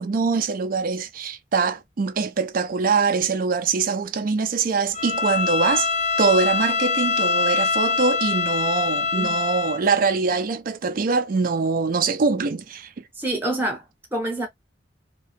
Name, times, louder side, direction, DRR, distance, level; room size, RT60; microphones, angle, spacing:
voice 1, 0.0-5.9 6.2-12.9, right 4 dB, 45° right, 0.4 m, -23 dB
Bowed string instrument, 4.9-9.8, left 4 dB, 35° left, 0.5 m, -24 dB
voice 2, 13.2-13.8 14.1-14.5, right 1 dB, 10° right, 0.7 m, -26 dB
2.7 x 2.2 x 3.3 m
head